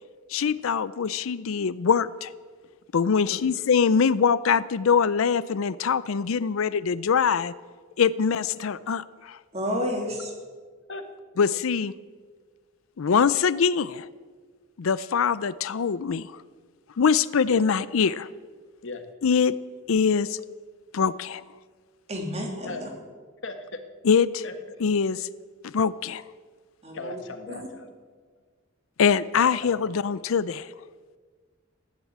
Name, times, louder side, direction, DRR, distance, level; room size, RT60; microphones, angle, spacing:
voice 1, 0.3-2.1 2.9-7.5 8.0-9.4 11.4-11.9 13.0-14.1 14.8-16.3 17.0-18.3 19.2-19.5 19.9-20.4 20.9-21.4 24.1-24.4 24.8-25.3 25.6-26.2 29.0-30.7, left 6 dB, 85° left, 17 dB, 0.5 m, -23 dB
voice 2, 9.5-10.3 22.1-22.9 26.8-27.2 27.5-27.7, equal, 30° right, 2 dB, 2.7 m, -30 dB
voice 3, 23.4-23.8 24.4-24.8 26.9-27.9 29.3-30.0, left 3 dB, 65° left, 7 dB, 1.5 m, -38 dB
15.5 x 10.5 x 8.6 m, 1.5 s
head